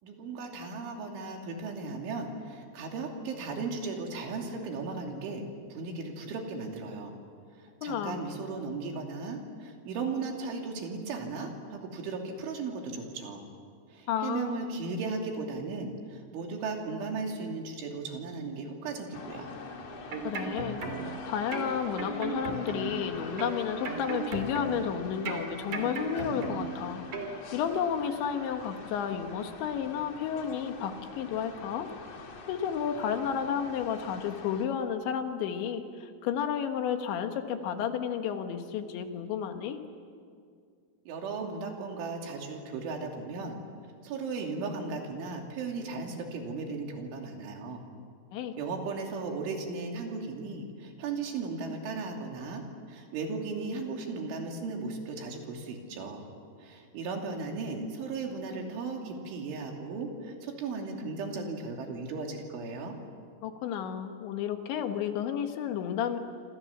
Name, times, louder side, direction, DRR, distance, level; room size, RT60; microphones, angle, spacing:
voice 1, 0.0-5.4 5.7-7.1 7.6-13.4 13.9-19.5 41.1-43.6 44.0-47.8 48.6-52.6 52.9-56.3 56.6-63.0, right 4 dB, 85° right, 2 dB, 5.3 m, -36 dB
voice 2, 7.8-8.2 14.1-14.6 20.3-27.0 27.5-31.9 32.5-39.8 48.3-48.6 63.4-66.2, left 8 dB, 75° left, 6 dB, 3.7 m, -32 dB
sound 1, 19.1-34.7, left 4 dB, 45° left, 2.4 m, -45 dB
sound 2, 19.9-21.2 21.5-23.0 23.4-24.9 25.2-26.8 27.1-27.3, right 4 dB, 45° right, 3.9 m, -36 dB
27.0 x 26.5 x 7.3 m, 2.2 s
omnidirectional pair, 5.4 m